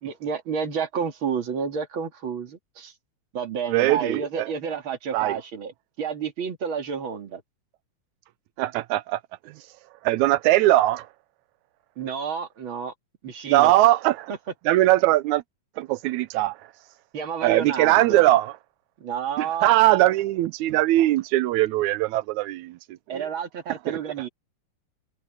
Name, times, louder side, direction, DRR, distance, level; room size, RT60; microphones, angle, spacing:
voice 1, 0.0-2.9 3.3-5.7 6.0-7.4 12.0-12.9 13.2-13.7 17.1-18.3 19.0-19.7 23.1-24.3, right 6 dB, 45° right, 2.9 m, -30 dB
voice 2, 3.7-4.5 5.1-5.4 8.6-9.2 10.0-11.1 13.5-14.3 14.7-15.4 15.8-16.6 17.4-18.5 19.4-22.8 23.1-23.2 23.9-24.0, right 16 dB, 85° right, 2.0 m, -20 dB
open air
omnidirectional pair, 3.3 m